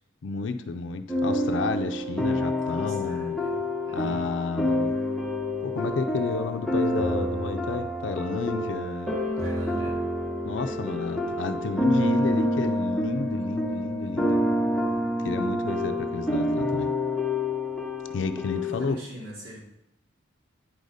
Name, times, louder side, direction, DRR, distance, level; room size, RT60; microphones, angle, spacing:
voice 1, 0.2-3.4 3.9-5.0 5.6-9.1 10.4-14.4 15.2-16.9 18.1-19.0, left 4 dB, 70° left, 7 dB, 0.5 m, -31 dB
sound 1, 1.1-18.8, left 1 dB, 5° left, 0.7 m, -27 dB
voice 2, 2.7-3.5 3.8-4.3 9.4-10.0 18.5-19.6, equal, 85° right, -5 dB, 2.3 m, -42 dB
9.2 x 4.9 x 4.0 m, 0.83 s
head